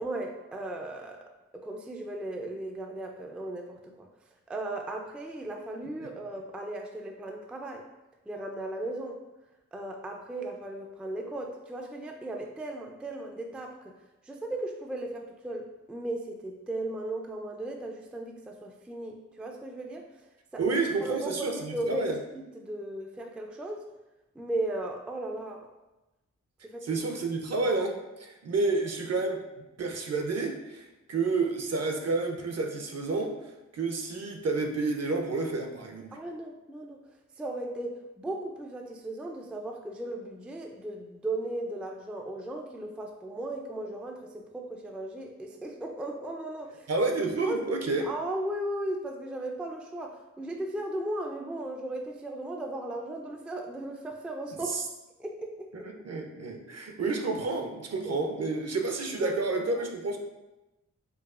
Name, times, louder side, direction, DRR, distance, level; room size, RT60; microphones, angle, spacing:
voice 1, 0.0-4.1 4.5-7.9 8.3-9.2 9.7-14.0 14.2-20.1 20.5-23.9 24.4-25.7 26.6-27.0 36.1-37.0 37.4-46.9 47.5-47.8 48.0-54.8 55.2-55.9 59.2-59.4, right 1 dB, 5° right, 2 dB, 0.3 m, -36 dB
voice 2, 20.6-22.2 26.8-29.4 29.8-33.3 33.7-36.1 46.9-48.1 54.7-54.8 56.0-60.2, right 3 dB, 55° right, 3 dB, 0.6 m, -30 dB
4.6 x 2.3 x 2.4 m, 1.0 s
cardioid pair, 65°, 31 cm